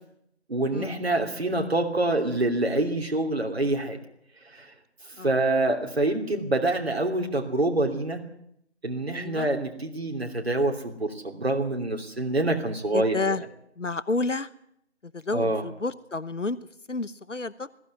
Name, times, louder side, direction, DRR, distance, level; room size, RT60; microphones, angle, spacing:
voice 1, 0.5-4.0 4.5-4.7 5.2-8.2 8.8-13.4 15.3-15.6, right 2 dB, 60° right, 2 dB, 3.0 m, -26 dB
voice 2, 9.1-9.5 12.9-13.4 13.8-14.5 15.1-16.6 16.9-17.7, left 3 dB, 90° left, 17 dB, 1.1 m, -30 dB
20.5 x 15.0 x 9.7 m, 0.73 s
figure-of-eight pair, 165°, 36 cm